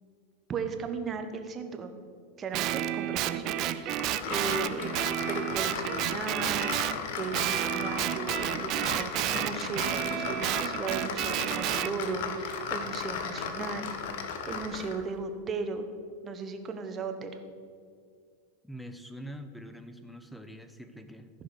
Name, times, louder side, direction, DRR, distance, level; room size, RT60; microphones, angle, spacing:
voice 1, 0.5-1.9 2.4-6.7 7.2-13.9 14.2-15.9 16.2-17.4, right 4 dB, 30° right, 7 dB, 1.2 m, -36 dB
Guitar, 2.5-7.0 7.3-11.9, right 13 dB, 50° right, 0.5 m, -31 dB
sound 1, 3.9-15.0, left 6 dB, 65° left, 1.1 m, -36 dB
voice 2, 18.6-21.3, equal, 5° left, 9 dB, 0.9 m, -44 dB
14.0 x 5.1 x 6.4 m, 2.1 s
hypercardioid pair, 100°, 0 cm